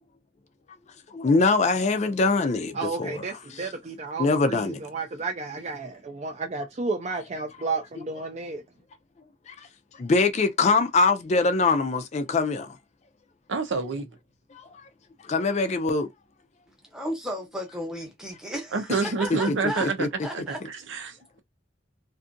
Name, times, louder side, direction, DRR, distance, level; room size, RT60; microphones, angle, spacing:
voice 1, 1.1-3.2 4.2-4.8 9.5-9.7 9.9-12.8 14.5-14.8 15.2-16.1 18.9-20.1, left 3 dB, 35° left, 0.4 m, -24 dB
voice 2, 2.7-8.6, right 4 dB, 35° right, 0.4 m, -32 dB
voice 3, 13.5-14.1 18.7-21.4, right 4 dB, 75° right, 0.7 m, -28 dB
voice 4, 16.9-18.8 19.2-19.9 20.2-20.6, equal, 5° right, 0.8 m, -34 dB
2.6 x 2.4 x 2.5 m
head